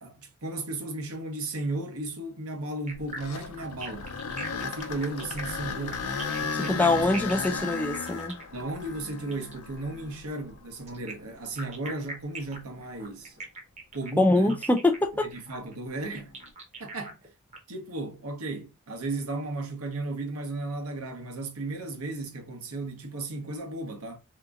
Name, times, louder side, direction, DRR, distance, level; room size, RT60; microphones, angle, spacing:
voice 1, 0.0-4.1 4.5-6.0 6.4-7.1 8.5-13.4 13.9-14.6 15.2-16.3 16.8-17.2 17.7-24.2, right 2 dB, 80° right, 1.0 m, -35 dB
sound 1, 2.9-11.0 11.6-11.7 12.4-12.5 16.1-16.4, left 5 dB, 90° left, 0.6 m, -35 dB
sound 2, 2.9-9.6 10.9-17.6, right 3 dB, 30° right, 0.8 m, -42 dB
voice 2, 6.5-8.3 14.2-15.3, left 2 dB, 5° left, 0.4 m, -24 dB
3.5 x 2.8 x 2.3 m
head